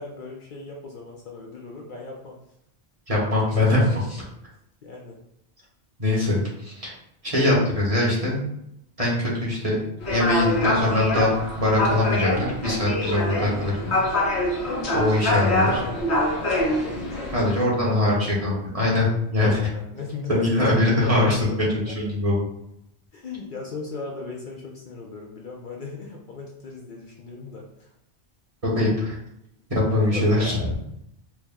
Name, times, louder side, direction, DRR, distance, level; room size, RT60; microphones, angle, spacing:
voice 1, 0.0-2.4 4.8-5.2 15.4-17.5 17.8-18.8 19.6-21.9 23.1-27.9 29.9-30.7, left 3 dB, 60° left, -1 dB, 0.6 m, -37 dB
voice 2, 3.1-4.2 6.0-6.9 7.2-8.5 9.0-9.8 10.1-11.3 11.6-13.9 14.9-15.8 17.3-19.6 20.3-22.4 28.6-29.2 29.7-30.6, left 2 dB, 35° right, -5 dB, 1.2 m, -22 dB
sound 1, 10.0-17.6, left 1 dB, 85° left, 1.3 m, -25 dB
4.6 x 2.1 x 3.4 m, 0.79 s
omnidirectional pair, 1.1 m